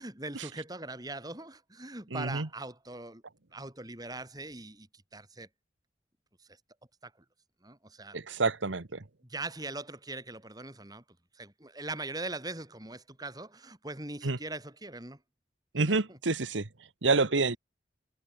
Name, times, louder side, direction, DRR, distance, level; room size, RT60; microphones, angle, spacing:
voice 1, 0.0-3.2 3.5-5.5 7.0-7.1 7.6-8.2 9.3-11.0 11.3-15.2 15.9-16.2, right 2 dB, 20° right, 5.4 m, -41 dB
voice 2, 2.1-2.5 8.1-9.0 14.2-14.4 15.7-16.6 17.0-17.6, right 3 dB, 90° right, 1.4 m, -28 dB
head